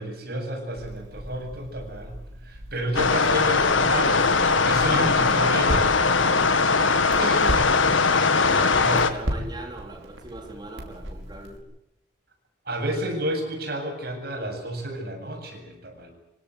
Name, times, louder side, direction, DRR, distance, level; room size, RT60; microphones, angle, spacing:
voice 1, 0.0-7.9 8.8-9.0 12.7-16.1, right 1 dB, 50° right, 3 dB, 7.8 m, -31 dB
Crackle, 0.7-11.6, equal, 85° right, 5.5 m, -36 dB
sound 1, 2.9-9.1, left 4 dB, 85° left, 1.9 m, -20 dB
voice 2, 7.2-7.9 8.3-11.6, right 1 dB, 20° right, 3 dB, 3.8 m, -39 dB
27.5 x 17.0 x 9.5 m, 0.88 s
head